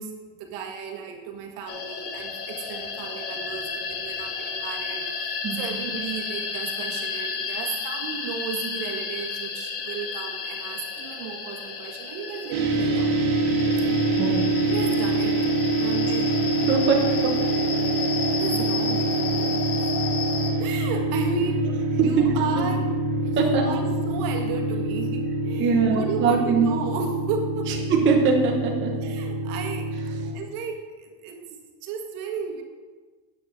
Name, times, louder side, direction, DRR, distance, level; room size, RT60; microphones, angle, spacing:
voice 1, 0.0-13.1 14.5-16.4 18.3-19.9 20.6-21.7 21.9-22.9 23.2-27.8 29.0-29.9 30.2-32.6, right 5 dB, 60° right, 3 dB, 1.8 m, -34 dB
sound 1, 1.7-20.5, left 5 dB, 30° left, 1.0 m, -32 dB
voice 2, 5.4-5.8 14.2-14.4 16.2-16.3 16.7-17.3 23.4-23.6 25.6-26.7 27.9-28.9, right 5 dB, 25° right, -1 dB, 0.9 m, -22 dB
sound 2, 12.5-30.3, right 2 dB, 85° right, 1.7 m, -25 dB
8.7 x 7.0 x 6.4 m, 1.4 s
cardioid pair, 180°, 47 cm